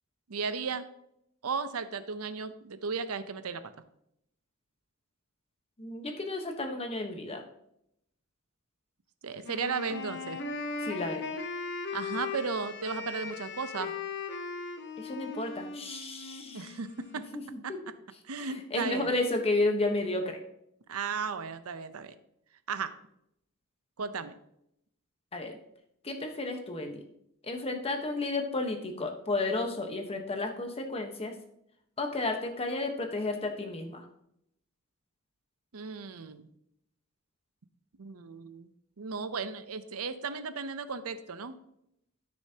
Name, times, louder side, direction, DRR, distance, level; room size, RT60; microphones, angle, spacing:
voice 1, 0.3-0.8 1.4-3.6 9.2-10.4 11.9-13.9 16.5-17.3 17.6-17.7 18.3-19.1 20.9-22.1 22.7-22.9 24.0-24.4 35.7-36.5 38.0-38.7 39.0-41.6, right 5 dB, 70° right, 12 dB, 0.7 m, -35 dB
voice 2, 5.8-7.4 10.8-11.3 15.0-16.7 17.3-17.8 18.4-20.4 25.3-25.6 26.0-27.0 27.4-31.3 32.0-34.0, left 2 dB, 25° left, 4 dB, 1.1 m, -32 dB
Wind instrument woodwind instrument, 9.4-17.3, left 4 dB, 55° left, 0.9 m, -38 dB
13.0 x 6.3 x 2.9 m, 0.77 s
head